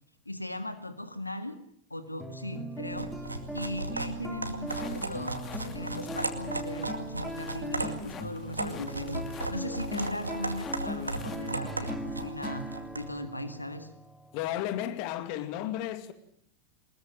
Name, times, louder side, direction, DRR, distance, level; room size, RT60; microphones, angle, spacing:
voice 1, 0.3-1.6 1.9-3.3 3.5-13.9, left 1 dB, 85° left, 2.0 m, -38 dB
sound 1, 2.2-14.9, right 1 dB, ahead, 2.0 m, -40 dB
sound 2, 2.8-13.1, right 2 dB, 80° right, 2.2 m, -37 dB
sound 3, 4.7-11.6, left 7 dB, 25° left, 2.6 m, -48 dB
voice 2, 14.3-16.1, left 12 dB, 45° left, 2.2 m, -33 dB
23.5 x 21.0 x 7.5 m
figure-of-eight pair, 90°, 0 cm